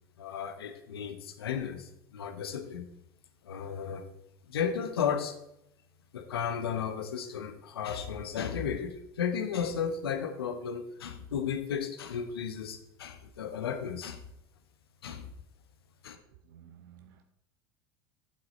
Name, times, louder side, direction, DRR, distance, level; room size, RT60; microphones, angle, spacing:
voice 1, 0.2-2.9 3.4-4.0 4.5-5.4 6.1-14.2 15.0-15.2 16.0-16.2, left 7 dB, 75° left, 8 dB, 1.0 m, -34 dB
voice 2, 16.5-17.2, right 9 dB, 65° right, 7 dB, 0.7 m, -54 dB
9.0 x 7.3 x 4.1 m, 0.83 s
figure-of-eight pair, 75°, 13 cm